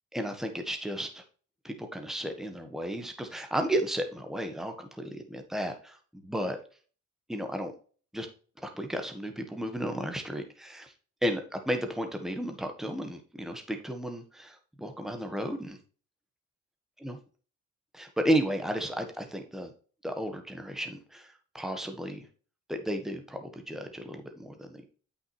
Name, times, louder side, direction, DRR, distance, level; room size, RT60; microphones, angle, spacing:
voice 1, 0.1-1.2 1.6-6.6 7.3-7.7 8.1-8.3 8.6-10.9 11.2-11.4 11.7-15.8 17.0-17.2 17.9-19.7 20.0-22.3 22.7-24.8, equal, ahead, 6 dB, 1.4 m, -33 dB
8.8 x 5.8 x 3.1 m, 0.40 s
cardioid pair, 90°, 30 cm